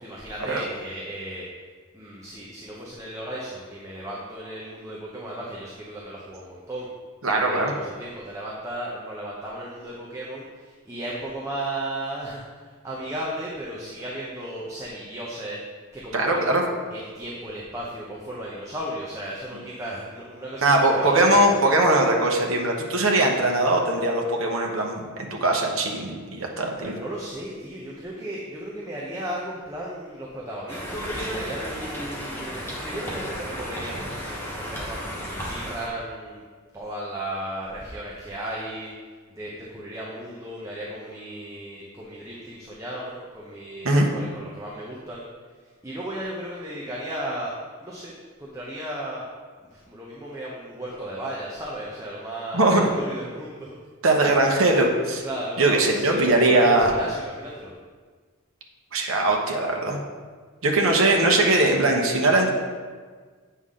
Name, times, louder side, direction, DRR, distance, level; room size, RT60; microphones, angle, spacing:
voice 1, 0.0-1.5 1.9-6.9 7.3-15.6 15.9-16.5 16.9-21.4 26.8-36.4 36.7-38.9 39.3-45.2 45.8-48.1 48.4-49.3 49.7-53.8 55.2-57.7 60.9-61.2, right 1 dB, 15° right, -5 dB, 0.8 m, -35 dB
voice 2, 7.2-7.7 16.1-16.7 20.6-26.9 43.8-44.1 52.5-52.9 54.0-55.2 55.6-56.9 58.9-60.0 60.6-62.5, right 2 dB, 65° right, 0 dB, 1.0 m, -20 dB
Conversation, 30.7-35.9, equal, 10° left, 1.2 m, -33 dB
8.2 x 5.5 x 3.7 m, 1.5 s
head